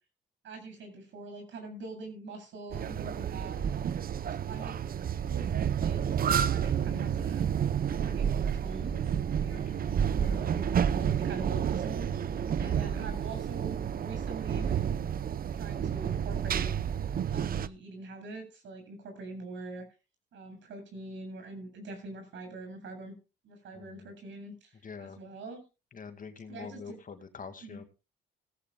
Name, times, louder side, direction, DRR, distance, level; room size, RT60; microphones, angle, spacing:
voice 1, 0.4-3.9 4.5-4.8 5.2-5.5 5.8-7.5 7.8-10.0 10.3-15.1 15.5-16.7 17.3-19.9 20.3-23.1 23.4-25.6 26.5-27.0 27.6-27.8, right 3 dB, 70° right, 5 dB, 7.9 m, -44 dB
sound 1, 2.7-17.7, right 8 dB, 45° right, 0.7 m, -30 dB
voice 2, 9.5-10.5 12.5-13.4 23.7-24.1 24.8-25.2 25.9-27.8, left 5 dB, 40° left, 8 dB, 2.2 m, -46 dB
18.5 x 15.5 x 2.3 m, 0.31 s
cardioid pair, 90°, 20 cm